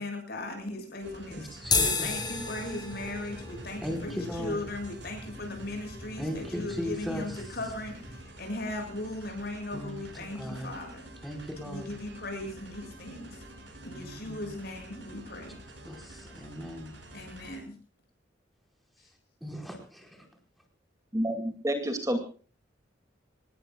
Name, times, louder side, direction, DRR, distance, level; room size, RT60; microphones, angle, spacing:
voice 1, 0.0-1.5 1.8-11.1 11.6-13.4 13.8-15.6 17.1-17.7, left 1 dB, 55° left, 5 dB, 7.3 m, -38 dB
sound 1, 1.0-17.6, right 1 dB, 65° right, 6.7 m, -49 dB
voice 2, 1.4-2.2 3.8-4.6 6.2-7.6 9.7-10.7 11.2-11.9 13.9-14.6 15.8-16.9 19.4-20.3, equal, ahead, 2 dB, 4.8 m, -38 dB
sound 2, 1.6-8.2, left 4 dB, 25° left, 7.7 m, -34 dB
voice 3, 21.1-22.2, right 1 dB, 15° right, 5 dB, 2.4 m, -29 dB
26.5 x 19.5 x 2.4 m, 0.39 s
head